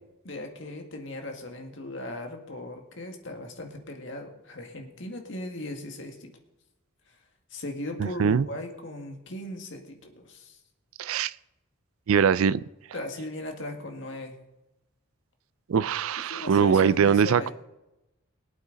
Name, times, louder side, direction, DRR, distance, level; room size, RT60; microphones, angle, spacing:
voice 1, 0.2-6.3 7.5-10.6 12.9-14.4 16.3-17.5, left 1 dB, 60° left, 1.9 m, -38 dB
voice 2, 8.0-8.5 11.0-11.3 12.1-12.6 15.7-17.5, right 7 dB, 80° right, 0.4 m, -22 dB
22.5 x 8.4 x 4.0 m
head